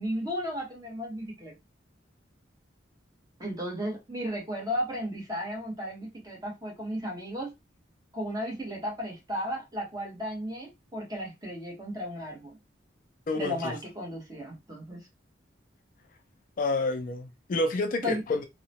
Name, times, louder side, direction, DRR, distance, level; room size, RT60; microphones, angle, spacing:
voice 1, 0.0-1.5 3.4-7.5 8.1-12.6 13.4-15.0 18.0-18.2, equal, 20° right, 1.0 m, -34 dB
voice 2, 13.3-13.8 16.6-18.5, left 2 dB, 45° left, 0.3 m, -29 dB
2.8 x 2.1 x 2.7 m
head